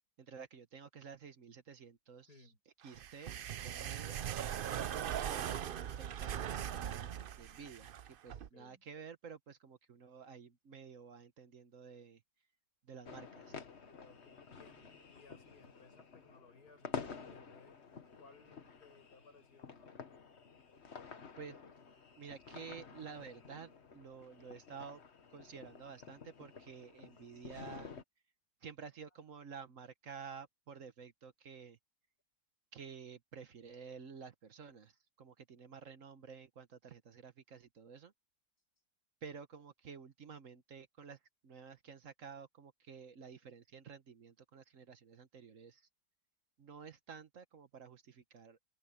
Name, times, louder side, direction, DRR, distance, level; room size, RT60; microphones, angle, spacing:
voice 1, 0.2-2.3 2.8-3.4 3.6-4.2 4.8-7.1 7.4-12.2 12.8-13.6 21.4-21.7 22.2-25.0 25.3-27.9 28.6-31.8 32.7-34.9 35.2-38.1 39.2-41.2 41.4-45.8 46.6-48.6, right 6 dB, 55° right, 1.4 m, -51 dB
voice 2, 2.3-2.6 8.3-8.8 13.9-17.8 18.2-19.9, left 3 dB, 75° left, 6.6 m, -62 dB
sound 1, 2.9-8.5, right 10 dB, 85° right, 0.4 m, -40 dB
sound 2, 13.1-28.0, left 5 dB, 45° left, 1.5 m, -50 dB
open air
omnidirectional pair, 1.7 m